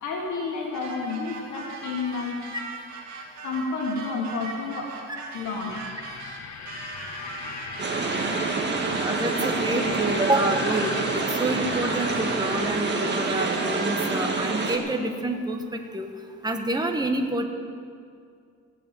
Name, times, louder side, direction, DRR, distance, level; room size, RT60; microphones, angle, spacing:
voice 1, 0.0-2.4 3.4-4.9 5.3-5.7 8.1-8.7 11.7-11.9, left 4 dB, 85° left, -2 dB, 1.8 m, -31 dB
sound 1, 0.7-14.4, right 4 dB, 75° right, 2.3 m, -39 dB
sound 2, 5.7-12.8, left 7 dB, 70° left, 0.9 m, -38 dB
sound 3, 7.8-14.8, right 4 dB, 35° right, 2.0 m, -27 dB
voice 2, 9.0-16.1 16.4-17.4, right 1 dB, 15° right, 4 dB, 1.3 m, -27 dB
16.0 x 7.3 x 9.2 m, 2.2 s
cardioid pair, 120°, 29 cm